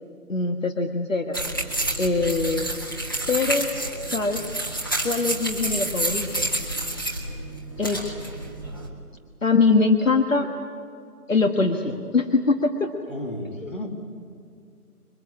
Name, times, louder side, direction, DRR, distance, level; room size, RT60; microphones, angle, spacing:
voice 1, 0.3-1.4 2.0-2.7 3.3-3.7 4.1-4.4 5.0-6.5 7.8-8.2 9.4-10.5 11.3-12.9 13.6-13.7, left 3 dB, 55° left, 5 dB, 1.6 m, -22 dB
sound 1, 1.3-8.9, right 1 dB, 15° left, 1.4 m, -29 dB
voice 2, 13.1-13.9, left 1 dB, 35° left, 3 dB, 2.6 m, -34 dB
27.0 x 22.5 x 8.5 m, 2.4 s
figure-of-eight pair, 175°, 46 cm